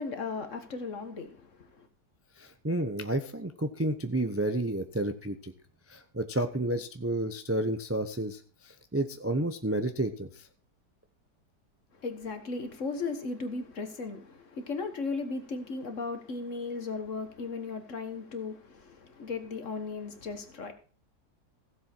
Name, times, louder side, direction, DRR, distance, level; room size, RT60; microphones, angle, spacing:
voice 1, 0.0-1.9 11.9-20.7, left 4 dB, 50° left, 1.8 m, -36 dB
voice 2, 2.4-5.5 5.9-10.4, right 1 dB, 15° right, 0.5 m, -31 dB
16.0 x 7.6 x 4.5 m
omnidirectional pair, 1.8 m